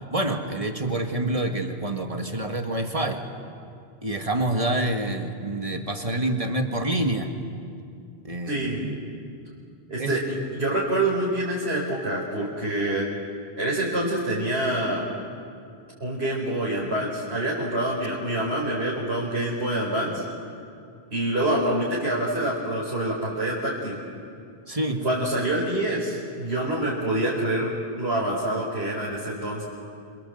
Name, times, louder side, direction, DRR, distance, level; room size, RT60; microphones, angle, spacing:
voice 1, 0.1-3.2 4.0-7.3 8.2-9.0 10.0-10.2 24.7-25.0, right 1 dB, 35° right, 4 dB, 2.1 m, -27 dB
voice 2, 8.5-8.8 9.9-13.1 13.6-15.0 16.0-20.2 21.1-24.0 25.0-29.6, right 1 dB, 80° right, -5 dB, 4.6 m, -26 dB
27.5 x 25.5 x 8.0 m, 2.4 s
omnidirectional pair, 1.1 m